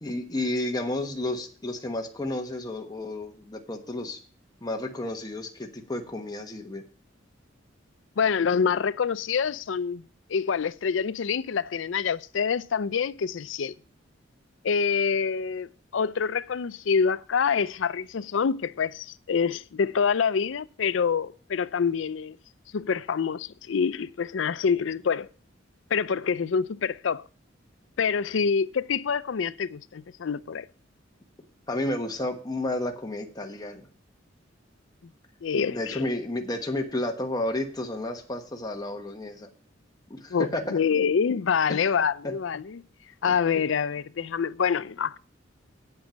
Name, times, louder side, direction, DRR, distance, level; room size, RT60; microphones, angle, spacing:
voice 1, 0.0-4.2 4.6-6.9 31.7-33.9 35.7-39.5 40.1-40.8 41.7-41.8 42.2-42.3, left 1 dB, 20° left, 1.2 m, -31 dB
voice 2, 8.2-10.0 10.3-13.7 14.6-22.4 22.7-25.3 25.9-27.2 28.0-30.7 35.4-36.1 40.3-42.8 43.2-45.2, left 6 dB, 75° left, 0.5 m, -26 dB
9.0 x 8.8 x 5.1 m
head